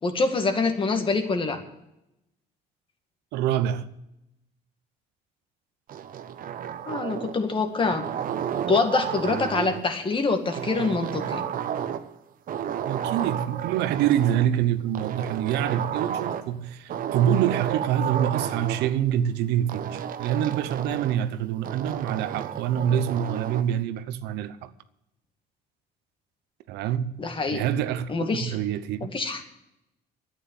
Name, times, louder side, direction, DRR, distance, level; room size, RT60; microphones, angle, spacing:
voice 1, 0.0-1.6 6.9-8.1 8.7-11.4 27.2-27.7 28.1-28.5 29.0-29.4, left 4 dB, 30° left, 2.1 m, -25 dB
voice 2, 3.3-3.9 12.9-24.7 26.7-27.2 27.5-29.1, right 10 dB, 90° right, 0.9 m, -26 dB
sound 1, 5.9-7.4 7.8-9.9 10.5-12.2 12.5-14.5 14.9-16.5 16.9-18.9 19.7-21.2 21.6-23.7, right 9 dB, 55° right, 1.0 m, -32 dB
10.5 x 9.4 x 9.2 m
cardioid pair, 110°, 17 cm